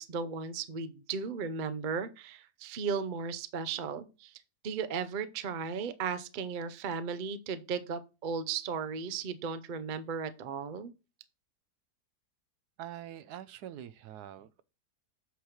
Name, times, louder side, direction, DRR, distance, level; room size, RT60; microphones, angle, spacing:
voice 1, 0.0-4.4 4.6-10.9, right 5 dB, 55° right, 0.5 m, -36 dB
voice 2, 12.8-14.6, right 11 dB, 80° right, 1.1 m, -45 dB
8.1 x 3.1 x 6.4 m
omnidirectional pair, 1.7 m